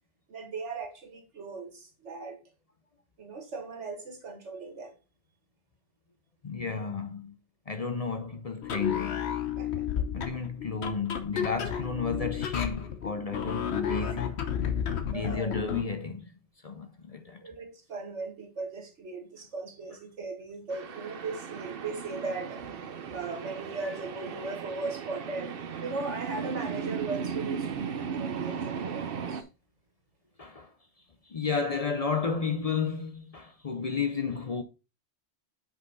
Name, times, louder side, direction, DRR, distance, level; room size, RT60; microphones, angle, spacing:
voice 1, 0.3-2.4 3.2-4.9 9.6-9.8 15.1-15.6 17.4-29.4, right 3 dB, 85° right, 1.9 m, -38 dB
voice 2, 6.4-7.4 7.7-9.2 10.1-14.4 15.1-16.3 16.6-17.5 30.4-30.7 31.3-34.6, left 5 dB, 40° left, 0.6 m, -32 dB
sound 1, 8.6-15.9, left 8 dB, 70° left, 1.2 m, -32 dB
sound 2, 20.7-29.4, right 6 dB, 55° right, 0.9 m, -36 dB
6.2 x 5.4 x 3.9 m
omnidirectional pair, 1.2 m